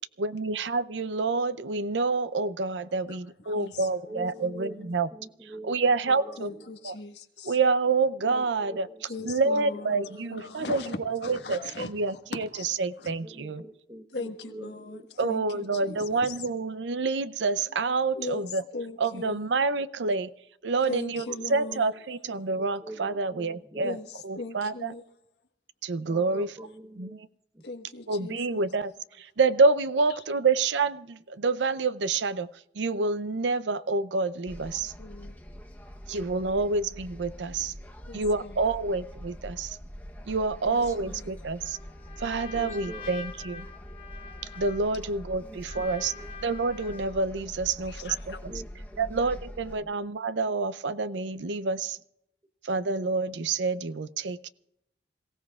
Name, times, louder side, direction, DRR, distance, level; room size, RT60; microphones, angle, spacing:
voice 1, 0.2-5.1 5.4-6.5 6.8-6.9 7.4-8.9 9.2-12.5 12.8-13.6 15.2-18.6 19.0-20.3 20.6-21.2 21.5-24.0 24.2-24.9 25.8-26.5 27.0-27.3 28.1-28.9 29.2-32.5 32.8-34.9 36.1-37.7 38.1-39.8 40.3-41.8 42.2-43.7 44.6-46.1 46.4-48.5 49.0-52.0 52.6-54.5, right 3 dB, 90° right, 0.6 m, -28 dB
voice 2, 3.4-4.2 6.4-7.6 9.1-13.2 14.1-16.4 18.1-19.4 20.9-21.9 23.8-25.0 27.6-28.7 30.1-30.2 35.0-35.4 38.0-38.6 40.6-41.3 47.8-48.4, left 3 dB, 75° left, 1.4 m, -40 dB
voice 3, 4.0-5.7 6.1-6.7 8.2-9.3 9.6-9.8 10.1-10.3 13.2-15.1 15.7-15.8 21.2-21.8 22.5-24.0 26.1-27.3 27.5-27.6 35.9-36.1 37.8-37.9 40.7-41.2 42.5-43.1 45.4-46.3 48.5-49.1 49.8-49.9, right 1 dB, 20° right, 1.0 m, -45 dB
sound 1, 34.5-49.8, equal, 10° left, 0.9 m, -44 dB
Trumpet, 41.6-47.3, left 5 dB, 30° left, 4.0 m, -45 dB
27.0 x 16.5 x 2.4 m
head